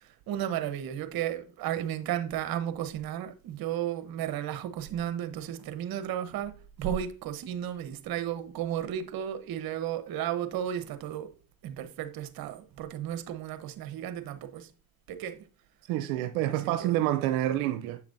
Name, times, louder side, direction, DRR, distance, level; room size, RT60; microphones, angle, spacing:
voice 1, 0.0-11.3 11.6-14.7 15.1-15.4 16.5-17.0, right 10 dB, 60° right, 0.9 m, -34 dB
voice 2, 15.9-18.0, right 13 dB, 85° right, 0.6 m, -28 dB
7.5 x 5.9 x 2.6 m
supercardioid pair, 80°, 41 cm